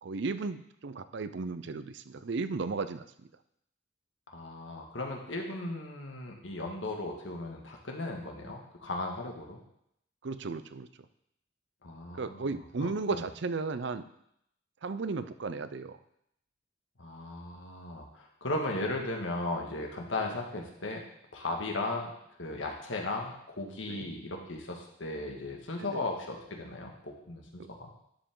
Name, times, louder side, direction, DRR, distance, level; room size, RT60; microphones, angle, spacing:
voice 1, 0.0-3.1 10.2-10.9 12.2-14.1 14.8-16.0 23.9-24.1 25.8-26.0 27.6-27.7, right 4 dB, 65° right, 12 dB, 0.6 m, -35 dB
voice 2, 4.3-9.6 11.8-13.2 17.0-21.0 21.3-22.1 22.4-27.9, left 2 dB, 80° left, 1 dB, 1.9 m, -36 dB
11.5 x 7.4 x 3.8 m, 0.75 s
head